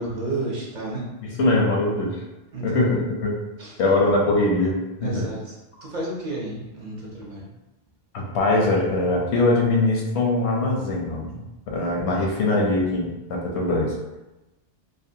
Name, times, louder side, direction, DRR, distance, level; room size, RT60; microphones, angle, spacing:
voice 1, 0.0-1.1 2.5-2.8 3.6-3.8 5.0-5.5 5.8-7.5, right 2 dB, 55° right, -4 dB, 0.6 m, -31 dB
voice 2, 1.2-2.2 2.6-3.3 3.8-5.3 8.1-13.9, left 2 dB, 85° left, -1 dB, 0.9 m, -22 dB
2.6 x 2.1 x 2.6 m, 1.0 s
omnidirectional pair, 1.1 m